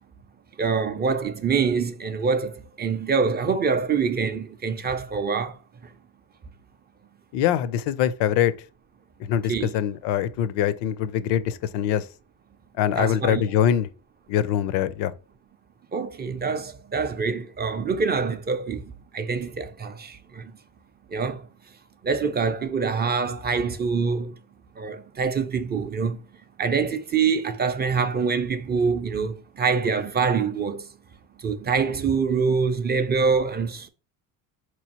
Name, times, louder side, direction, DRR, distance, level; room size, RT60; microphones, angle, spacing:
voice 1, 0.6-5.6 9.5-9.7 13.0-13.4 15.9-20.5 21.1-21.4 22.0-24.3 24.8-26.2 26.6-30.9 31.4-33.9, right 5 dB, 25° right, 0.4 m, -25 dB
voice 2, 7.3-8.5 9.2-12.1 12.8-13.9 14.3-15.1, left 10 dB, 75° left, 0.5 m, -23 dB
4.1 x 3.1 x 2.8 m
supercardioid pair, 95°, 41 cm